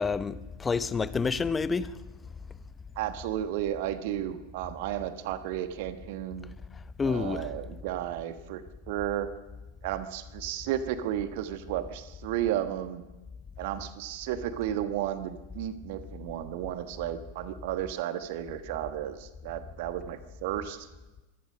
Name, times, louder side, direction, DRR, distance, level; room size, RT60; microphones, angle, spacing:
voice 1, 0.0-1.9 7.0-7.5, left 5 dB, 15° left, 0.9 m, -28 dB
voice 2, 3.0-6.5 7.0-9.3 9.8-13.0 13.6-20.9, right 12 dB, 50° right, 1.3 m, -33 dB
24.5 x 16.5 x 6.3 m
figure-of-eight pair, 90°, 0 cm